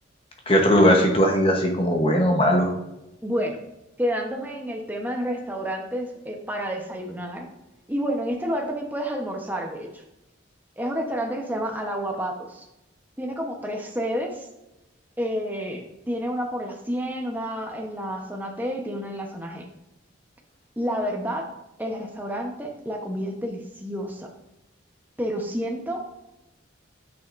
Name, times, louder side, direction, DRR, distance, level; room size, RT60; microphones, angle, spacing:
voice 1, 0.5-2.7, equal, 30° left, 2 dB, 1.0 m, -19 dB
voice 2, 3.2-3.6 4.0-7.5 7.9-10.0 10.8-12.7 13.2-14.5 15.2-19.7 20.8-21.5 21.8-24.3 25.2-26.0, equal, 10° right, 2 dB, 0.9 m, -29 dB
9.7 x 5.7 x 2.6 m, 0.92 s
head